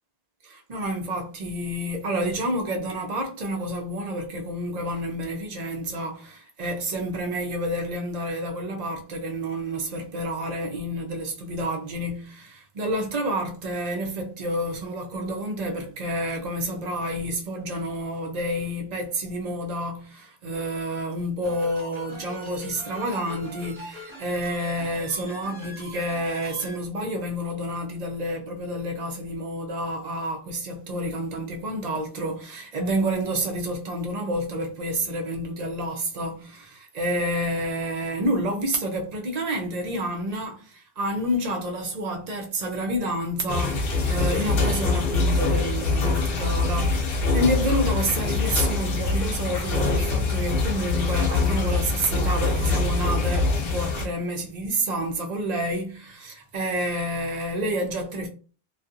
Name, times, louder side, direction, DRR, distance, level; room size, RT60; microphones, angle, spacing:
voice 1, 0.4-58.3, equal, 50° right, 0.6 m, -29 dB
sound 1, 21.4-26.8, left 1 dB, 30° right, 0.9 m, -41 dB
sound 2, 43.5-54.1, left 3 dB, 70° left, 0.8 m, -24 dB
2.6 x 2.3 x 2.5 m
omnidirectional pair, 1.0 m